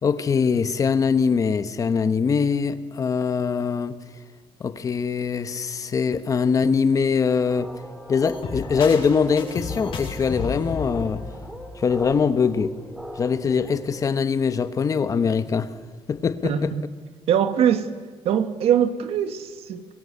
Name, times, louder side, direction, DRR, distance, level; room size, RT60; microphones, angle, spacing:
voice 1, 0.0-4.0 4.6-7.7 8.1-11.2 11.7-12.7 13.2-15.7 16.1-16.7, left 6 dB, 35° left, 1.1 m, -22 dB
sound 1, 7.5-14.1, right 1 dB, 5° right, 2.5 m, -40 dB
sound 2, 8.2-12.2, left 5 dB, 65° left, 5.8 m, -33 dB
voice 2, 16.4-16.9 17.3-17.9 18.3-19.9, right 9 dB, 80° right, 1.9 m, -22 dB
27.0 x 23.5 x 8.4 m
cardioid pair, 165°, 10 cm